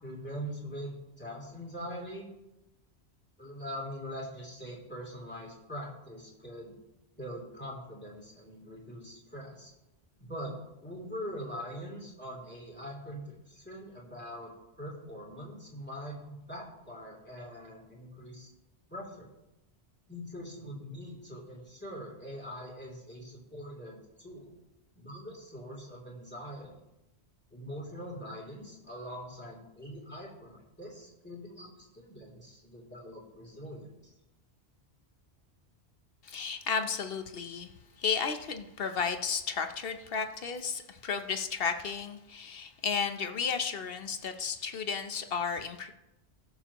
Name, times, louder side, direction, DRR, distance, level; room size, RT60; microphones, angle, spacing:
voice 1, 0.0-2.3 3.4-6.7 7.2-9.7 10.2-18.5 18.9-19.3 20.1-24.5 24.9-26.7 27.5-33.9, equal, 10° left, -4 dB, 3.2 m, -43 dB
voice 2, 36.2-37.7 38.0-45.9, left 6 dB, 60° left, 8 dB, 1.0 m, -33 dB
19.0 x 6.9 x 3.0 m, 0.94 s
omnidirectional pair, 1.1 m